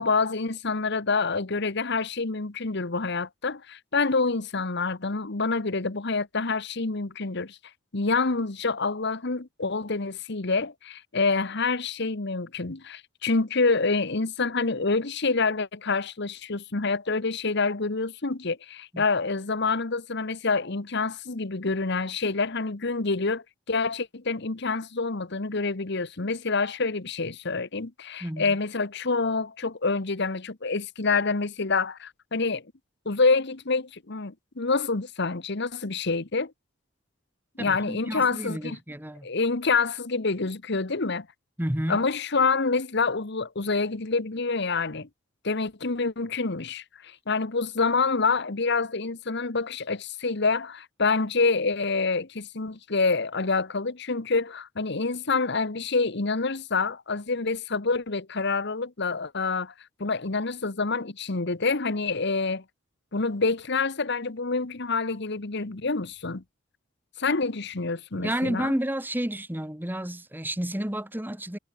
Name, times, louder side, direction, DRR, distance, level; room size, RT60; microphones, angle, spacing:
voice 1, 0.0-7.6 7.9-32.6 33.0-36.5 37.6-38.8 39.2-41.3 41.9-45.1 45.4-59.7 60.0-62.6 63.1-66.4 67.2-68.8, left 4 dB, 60° left, 1.3 m, -27 dB
voice 2, 28.2-28.5 37.6-39.3 41.6-42.0 68.2-71.6, right 1 dB, 10° right, 1.5 m, -31 dB
head